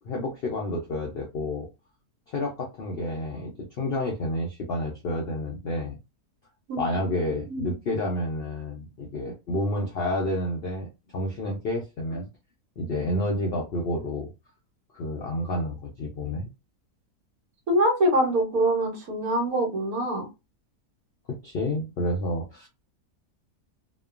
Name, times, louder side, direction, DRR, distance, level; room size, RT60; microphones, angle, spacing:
voice 1, 0.0-1.7 2.3-6.0 6.8-10.9 11.1-12.3 12.8-14.3 14.9-16.5 21.3-22.7, left 1 dB, 70° left, 0 dB, 0.5 m, -29 dB
voice 2, 17.7-20.3, right 1 dB, 70° right, 2 dB, 1.3 m, -24 dB
2.9 x 2.2 x 2.4 m, 0.26 s
omnidirectional pair, 1.6 m